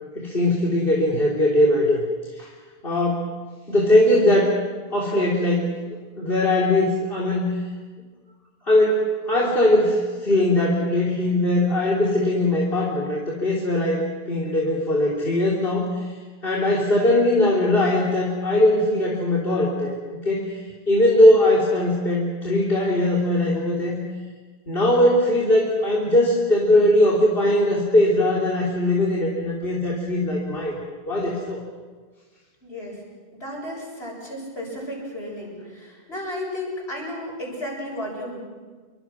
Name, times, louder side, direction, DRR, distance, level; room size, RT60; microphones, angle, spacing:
voice 1, 0.2-2.0 2.4-2.5 2.8-3.3 3.7-4.5 4.9-5.7 6.2-7.6 8.7-16.1 16.4-20.6 20.9-24.0 24.7-30.7 31.1-31.6, left 1 dB, 60° left, -3 dB, 3.5 m, -20 dB
voice 2, 32.6-33.0 33.3-38.4, left 1 dB, 80° left, -1 dB, 7.9 m, -33 dB
28.0 x 24.0 x 6.2 m, 1.4 s
omnidirectional pair, 1.1 m